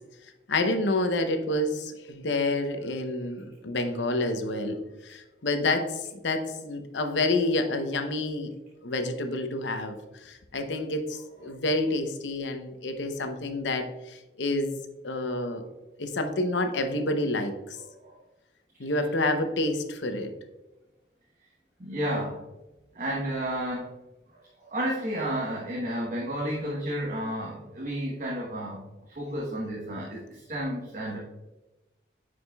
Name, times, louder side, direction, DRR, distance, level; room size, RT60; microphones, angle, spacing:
voice 1, 0.5-8.5 8.8-15.7 16.0-17.8 18.8-20.3, left 2 dB, 90° left, 6 dB, 0.8 m, -28 dB
voice 2, 21.8-22.4 22.9-23.9 24.6-28.8 29.1-31.2, equal, 45° right, -3 dB, 1.0 m, -31 dB
9.5 x 4.9 x 2.3 m, 1.0 s
head